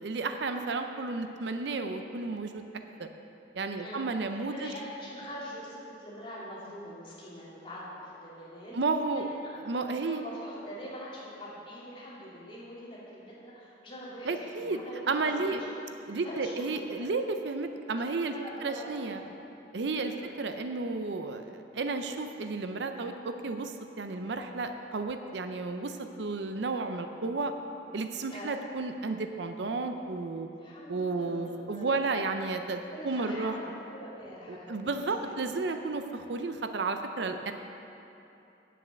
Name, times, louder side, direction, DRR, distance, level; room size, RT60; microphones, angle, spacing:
voice 1, 0.0-2.6 3.5-4.7 8.7-9.3 9.7-10.2 14.3-14.8 15.1-15.6 16.1-18.3 18.6-19.2 19.7-20.1 20.4-27.5 27.9-30.5 30.9-33.5 34.5-37.5, right 3 dB, 65° right, 7 dB, 0.5 m, -32 dB
voice 2, 3.8-15.7 16.2-16.7 17.0-17.2 18.3-19.3 19.9-20.3 28.3-28.6 30.6-32.1 32.9-33.6 33.9-35.0 35.3-35.4, equal, 30° left, -8 dB, 2.5 m, -44 dB
9.2 x 7.5 x 6.5 m, 2.9 s
head